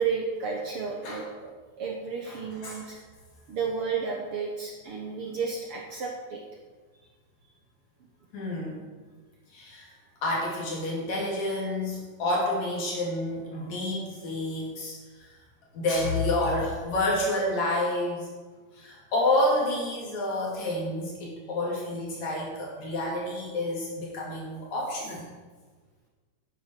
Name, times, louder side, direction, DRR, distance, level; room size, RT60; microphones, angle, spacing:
voice 1, 0.0-1.5 1.8-3.0 3.5-6.4, right 5 dB, 65° right, 0 dB, 1.5 m, -32 dB
voice 2, 8.3-8.8 9.5-9.9 10.2-15.3 15.7-18.3 18.7-25.3, left 1 dB, 60° left, -4 dB, 3.9 m, -29 dB
11.0 x 9.4 x 4.5 m, 1.4 s
omnidirectional pair, 3.7 m